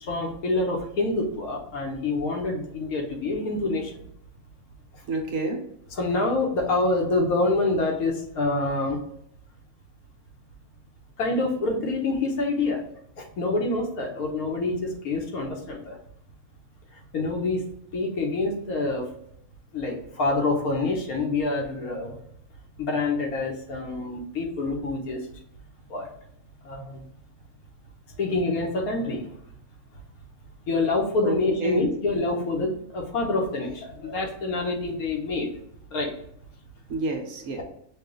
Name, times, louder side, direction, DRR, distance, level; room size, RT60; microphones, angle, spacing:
voice 1, 0.0-3.9 5.9-9.0 11.2-12.8 13.2-16.0 17.1-17.7 17.9-19.1 19.7-22.2 22.8-25.3 25.9-26.1 26.6-27.0 28.2-29.3 30.7-35.5 35.9-36.1 37.6-37.7, left 2 dB, 85° left, 1 dB, 1.4 m, -26 dB
voice 2, 5.1-5.6 31.2-31.8 36.9-37.6, right 3 dB, 65° right, 2 dB, 1.2 m, -29 dB
5.8 x 2.3 x 3.8 m, 0.73 s
omnidirectional pair, 1.5 m